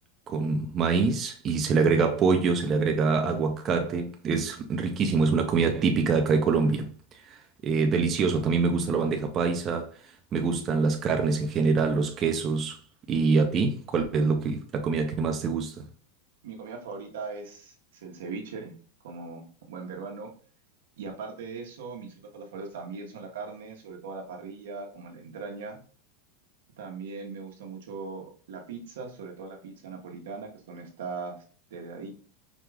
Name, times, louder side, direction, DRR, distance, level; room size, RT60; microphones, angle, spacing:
voice 1, 0.3-9.9 10.3-12.8 13.1-15.9, right 4 dB, 30° right, 0.5 m, -25 dB
voice 2, 16.4-18.7 19.0-20.3 21.0-25.8 26.8-31.4 31.7-32.1, right 4 dB, 85° right, 1.1 m, -39 dB
4.8 x 2.4 x 3.3 m
supercardioid pair, 130°, 0 cm